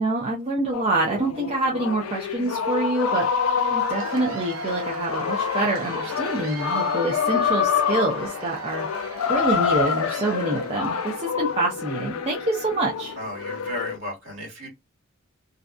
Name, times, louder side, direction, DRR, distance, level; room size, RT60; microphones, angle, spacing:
voice 1, 0.0-8.9 9.3-13.2, right 2 dB, 30° right, 0.5 m, -26 dB
sound 1, 0.7-14.0, left 6 dB, 80° left, 0.4 m, -27 dB
Cheering / Applause / Crowd, 3.6-11.2, right 2 dB, 80° right, 0.6 m, -37 dB
voice 2, 13.2-14.7, left 1 dB, 60° right, 1.4 m, -34 dB
2.6 x 2.2 x 2.4 m
head